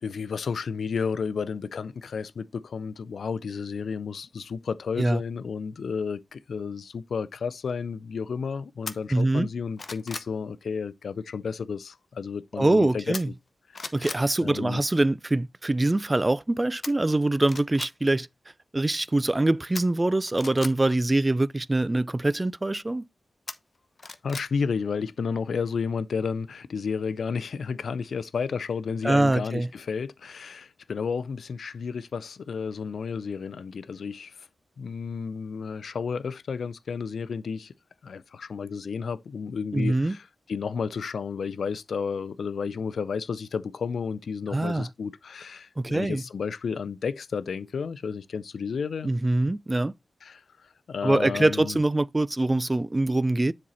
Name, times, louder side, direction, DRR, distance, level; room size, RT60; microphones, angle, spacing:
voice 1, 0.0-13.3 14.0-14.1 14.4-14.8 24.2-34.3 34.8-37.7 38.0-49.1 50.2-50.4 50.9-51.8, left 5 dB, 80° left, 0.4 m, -32 dB
sound 1, 8.9-9.0 9.5-10.3 13.1-13.5 13.7-14.2 16.8-16.9 17.4-17.9 19.8-20.7 23.5-24.5 24.9-25.0, left 3 dB, 50° left, 0.8 m, -37 dB
voice 2, 9.1-9.5 12.6-13.3 13.9-18.3 18.7-23.0 29.0-29.7 39.7-40.2 44.5-44.9 45.8-46.2 49.0-49.9 51.0-53.5, right 2 dB, 25° right, 0.4 m, -24 dB
7.4 x 4.4 x 4.1 m
wide cardioid pair, 75°, 0 cm